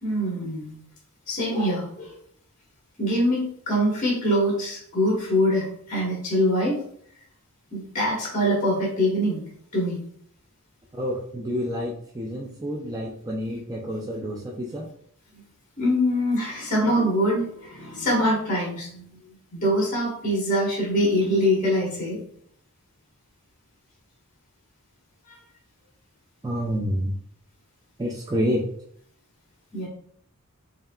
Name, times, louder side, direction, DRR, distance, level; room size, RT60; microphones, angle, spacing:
voice 1, 0.0-0.7 1.3-2.1 3.0-6.7 7.7-9.4 9.7-10.0 15.8-19.2 19.5-22.2 25.3-25.4 29.7-29.9, equal, 35° left, -5 dB, 1.5 m, -24 dB
voice 2, 10.9-14.9 26.4-27.2 28.0-28.7, equal, 15° right, -2 dB, 0.4 m, -28 dB
5.4 x 2.7 x 2.4 m, 0.64 s
head